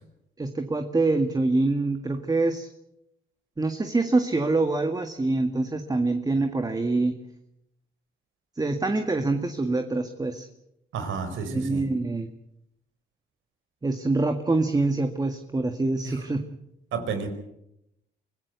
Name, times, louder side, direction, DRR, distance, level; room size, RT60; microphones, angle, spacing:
voice 1, 0.4-2.7 3.6-7.1 8.6-10.5 11.5-12.3 13.8-16.4, right 2 dB, 20° right, 6 dB, 1.8 m, -25 dB
voice 2, 10.9-11.9 16.0-16.1 16.9-17.3, right 5 dB, 80° right, 8 dB, 4.8 m, -31 dB
25.0 x 16.0 x 8.1 m, 0.84 s
cardioid pair, 90°, 20 cm